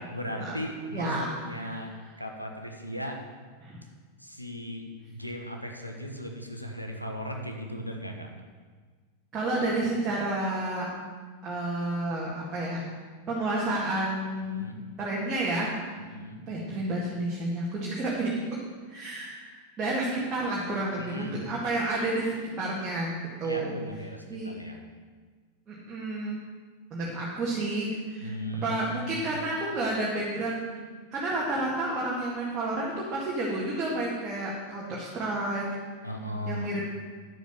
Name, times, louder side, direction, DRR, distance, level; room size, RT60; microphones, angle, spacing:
voice 1, 0.0-3.2 4.2-8.3 14.4-14.8 16.0-16.4 21.0-21.4 23.4-24.8 28.2-29.3 36.0-36.8, equal, 90° left, 2 dB, 1.1 m, -37 dB
voice 2, 0.9-1.3 1.7-1.8 3.6-3.8 9.3-10.9 11.4-12.8 13.3-14.7 15.0-15.7 16.5-18.6 18.9-19.4 19.8-23.1 23.4-23.7 24.3-24.5 25.7-26.4 26.9-28.3 28.6-30.7 31.1-35.6 36.5-36.9, right 2 dB, 25° right, -5 dB, 2.0 m, -30 dB
9.8 x 7.2 x 7.0 m, 1.5 s
figure-of-eight pair, 90°, 0 cm